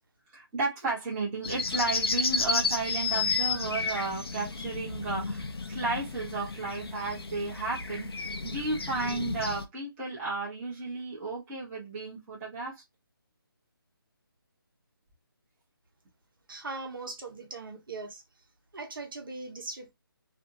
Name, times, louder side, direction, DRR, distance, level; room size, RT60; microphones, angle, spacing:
voice 1, 0.3-12.8, right 3 dB, 10° right, 0.6 m, -33 dB
sound 1, 1.4-9.7, left 4 dB, 85° left, 0.5 m, -32 dB
voice 2, 16.5-18.2 18.7-19.9, right 3 dB, 60° right, 0.9 m, -40 dB
2.5 x 2.1 x 2.6 m
figure-of-eight pair, 165°, 13 cm